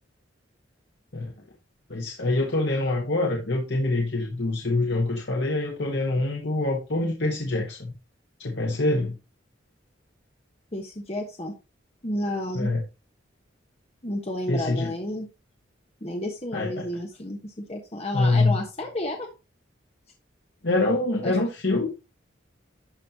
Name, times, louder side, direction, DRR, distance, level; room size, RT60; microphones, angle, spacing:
voice 1, 1.9-7.9 8.4-9.2 12.5-12.8 14.5-14.9 16.5-16.9 18.1-18.6 20.6-21.9, left 2 dB, 65° left, 0 dB, 1.4 m, -25 dB
voice 2, 10.7-11.5 12.0-12.7 14.0-15.3 16.0-19.3 21.2-21.4, left 1 dB, 30° left, 2 dB, 1.2 m, -31 dB
12.0 x 5.3 x 2.9 m, 0.27 s
head